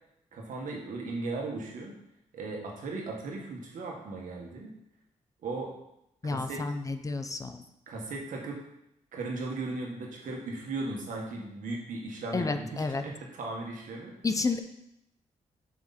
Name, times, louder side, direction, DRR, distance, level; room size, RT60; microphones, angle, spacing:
voice 1, 0.3-1.9 2.3-4.7 5.4-5.7 6.2-6.7 7.9-8.6 9.1-14.1, right 3 dB, 85° right, -1 dB, 1.7 m, -37 dB
voice 2, 6.2-7.6 12.3-13.0 14.2-14.6, left 3 dB, 25° left, 8 dB, 0.5 m, -30 dB
7.6 x 5.1 x 4.2 m, 0.80 s
wide cardioid pair, 125°, 13 cm